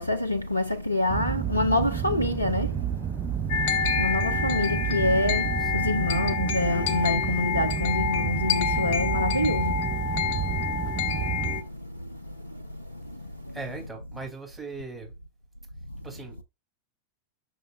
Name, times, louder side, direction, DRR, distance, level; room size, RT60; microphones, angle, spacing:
voice 1, 0.0-13.6, left 1 dB, 85° left, 0.4 m, -28 dB
sound 1, 1.1-11.6, right 9 dB, 25° right, 0.5 m, -30 dB
sound 2, 3.5-11.6, left 8 dB, 50° left, 0.9 m, -28 dB
voice 2, 13.5-15.1 16.0-16.4, right 3 dB, 5° right, 2.8 m, -39 dB
6.4 x 6.3 x 2.4 m
figure-of-eight pair, 90°, 0 cm